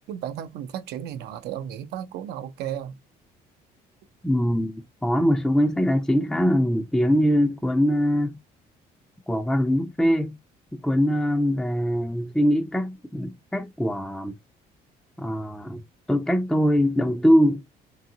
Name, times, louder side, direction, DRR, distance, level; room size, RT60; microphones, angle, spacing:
voice 1, 0.1-3.0, right 10 dB, 75° right, 0.6 m, -34 dB
voice 2, 4.2-8.4 9.3-10.4 10.7-14.4 15.2-15.8 16.1-17.6, equal, 5° left, 0.4 m, -22 dB
4.0 x 3.5 x 2.7 m
cardioid pair, 110°, 17 cm